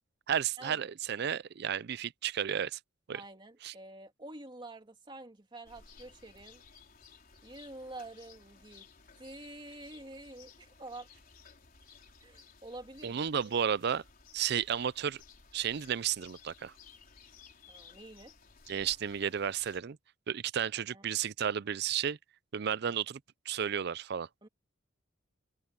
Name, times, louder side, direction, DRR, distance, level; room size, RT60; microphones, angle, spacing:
voice 1, 0.3-2.8 3.1-3.2 3.6-3.7 13.0-14.0 14.3-15.2 15.5-16.7 18.7-20.0 20.3-22.2 22.5-23.2 23.5-24.3, right 8 dB, 55° right, 0.5 m, -32 dB
voice 2, 3.1-6.6 7.4-8.9 9.2-11.1 12.2-13.3 17.7-18.3 20.9-21.1 24.4-24.5, right 2 dB, 25° right, 2.5 m, -48 dB
sound 1, 5.6-19.8, left 5 dB, 45° left, 4.3 m, -57 dB
head